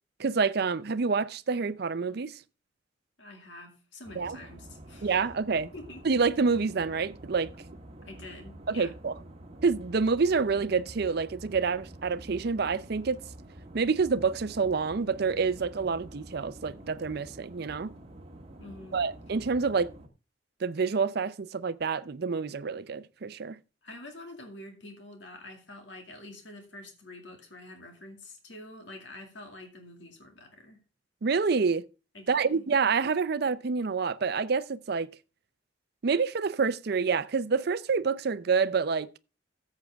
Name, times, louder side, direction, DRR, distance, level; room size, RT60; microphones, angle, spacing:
voice 1, 0.2-2.4 4.2-4.4 5.0-5.7 6.0-7.5 8.7-9.1 9.6-13.2 13.7-17.9 18.9-19.9 20.6-23.6 31.2-31.9 32.3-35.1 36.0-39.1, right 5 dB, 55° right, 0.5 m, -27 dB
voice 2, 3.2-5.2 5.7-6.0 8.0-8.9 18.6-19.0 23.8-30.8 32.1-32.6, left 2 dB, 75° left, 2.1 m, -47 dB
sound 1, 4.0-20.1, right 1 dB, 35° right, 1.4 m, -48 dB
13.5 x 7.6 x 3.4 m
head